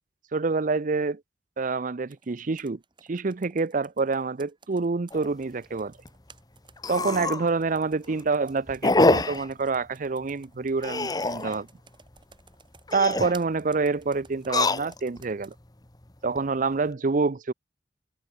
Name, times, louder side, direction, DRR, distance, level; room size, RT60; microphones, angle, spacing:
voice 1, 0.3-1.2 1.6-2.8 3.1-5.9 6.9-11.7 12.9-15.5 16.2-17.5, right 4 dB, 45° right, 0.6 m, -27 dB
Computer keyboard, 2.1-15.6, right 4 dB, 25° right, 5.0 m, -56 dB
sound 1, 5.1-5.3 5.7-5.8 6.1-6.2 6.8-7.5 7.9-8.2 8.8-9.5 10.8-11.6 12.8-13.4 14.4-15.2 15.8-16.4, left 2 dB, 20° left, 1.1 m, -25 dB
head